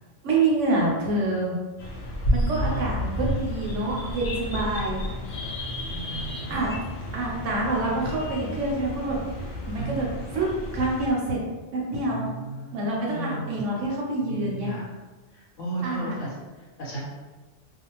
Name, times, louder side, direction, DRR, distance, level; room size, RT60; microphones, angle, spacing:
voice 1, 0.2-1.6 2.3-5.0 6.5-6.7 7.1-10.5 10.7-11.4 11.7-12.3 12.7-14.7 15.8-16.2, right 2 dB, 75° right, -3 dB, 1.1 m, -27 dB
sound 1, 1.8-11.1, equal, 60° left, 0.6 m, -31 dB
voice 2, 2.5-2.9 5.9-6.7 9.7-10.2 12.1-13.6 14.3-14.9 15.3-16.3 16.8-17.1, right 2 dB, 80° left, -7 dB, 1.0 m, -34 dB
2.5 x 2.3 x 2.9 m, 1.2 s
omnidirectional pair, 1.3 m